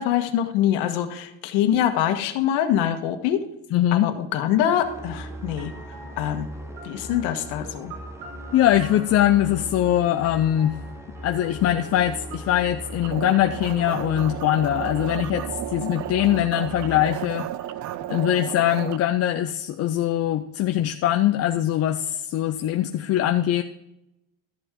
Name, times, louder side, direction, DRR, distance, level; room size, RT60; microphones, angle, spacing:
voice 1, 0.0-3.4 3.9-5.7 6.2-6.5 6.8-8.0 15.8-15.9, left 10 dB, 85° left, 7 dB, 1.5 m, -24 dB
voice 2, 3.7-4.1 8.5-10.8 11.2-17.5 18.1-23.6, left 12 dB, 40° left, 7 dB, 0.5 m, -22 dB
sound 1, 4.7-14.5, right 2 dB, 90° right, 2.6 m, -45 dB
sound 2, 4.8-17.3, right 1 dB, 5° right, 0.7 m, -39 dB
sound 3, 13.0-19.0, right 12 dB, 45° right, 0.5 m, -33 dB
13.0 x 7.4 x 3.7 m, 0.87 s
cardioid pair, 145°, 41 cm